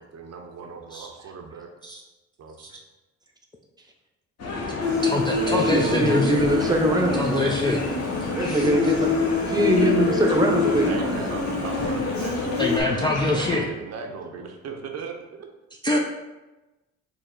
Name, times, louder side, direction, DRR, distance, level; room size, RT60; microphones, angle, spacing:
voice 1, 0.0-1.7 2.4-2.7 10.9-15.5, right 5 dB, 50° right, 3 dB, 0.6 m, -38 dB
sound 1, 4.4-13.6, left 3 dB, 50° left, 1.0 m, -31 dB
Human voice, 4.8-12.8, left 3 dB, 80° left, 0.9 m, -26 dB
voice 2, 5.0-6.4 7.2-9.0 9.3-9.5 12.6-13.6 15.8-16.0, left 2 dB, 15° left, -1 dB, 0.3 m, -26 dB
voice 3, 5.5-7.5 8.3-11.2, right 1 dB, 10° right, 1 dB, 0.7 m, -23 dB
4.6 x 2.0 x 3.7 m, 1.1 s
supercardioid pair, 75°, 34 cm